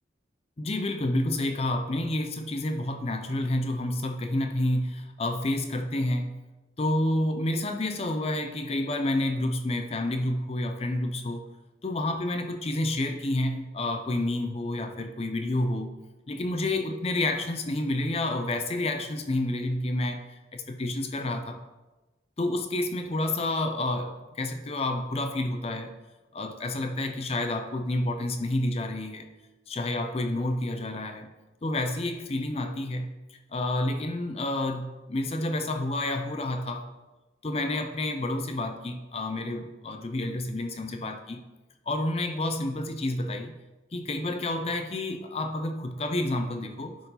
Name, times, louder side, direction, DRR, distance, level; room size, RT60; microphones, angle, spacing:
voice 1, 0.6-6.3 6.8-11.5 11.8-15.9 16.3-21.6 22.4-25.9 26.3-29.3 29.7-31.3 31.6-36.9 37.4-41.4 41.9-43.5 43.9-47.0, left 1 dB, 30° left, 6 dB, 0.5 m, -29 dB
10.5 x 4.6 x 4.1 m, 1.1 s
head